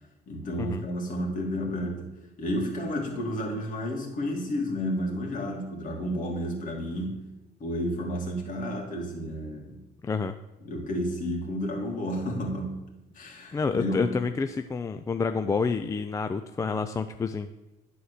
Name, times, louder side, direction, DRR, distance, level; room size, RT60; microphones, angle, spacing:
voice 1, 0.3-2.1 2.4-7.3 7.6-9.8 10.6-12.8 13.1-14.2, equal, 50° left, 0 dB, 2.4 m, -31 dB
voice 2, 10.0-10.3 13.5-17.5, left 4 dB, 20° left, 9 dB, 0.3 m, -28 dB
11.0 x 4.2 x 6.6 m, 0.98 s
cardioid pair, 110°, 17 cm